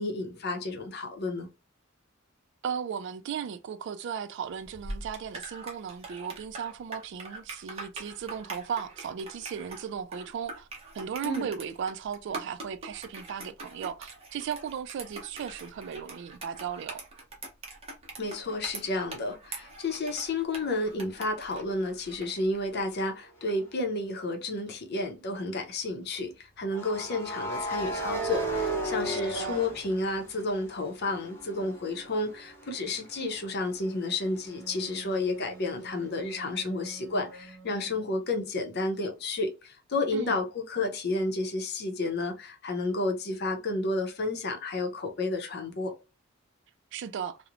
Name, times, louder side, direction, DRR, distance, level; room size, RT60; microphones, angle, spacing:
voice 1, 0.0-1.5 11.2-11.5 18.2-45.9, left 2 dB, 55° left, 0.6 m, -31 dB
voice 2, 2.6-10.7 10.9-17.0 29.1-29.6 40.1-40.4 46.9-47.4, right 7 dB, 60° right, 0.3 m, -36 dB
sound 1, 4.6-22.4, right 2 dB, 30° right, 0.7 m, -43 dB
sound 2, 23.4-23.6 26.7-30.6 31.0-34.6, right 2 dB, 10° left, 0.6 m, -35 dB
Wind instrument woodwind instrument, 34.5-38.6, right 3 dB, 80° right, 0.7 m, -49 dB
2.9 x 2.0 x 2.4 m
head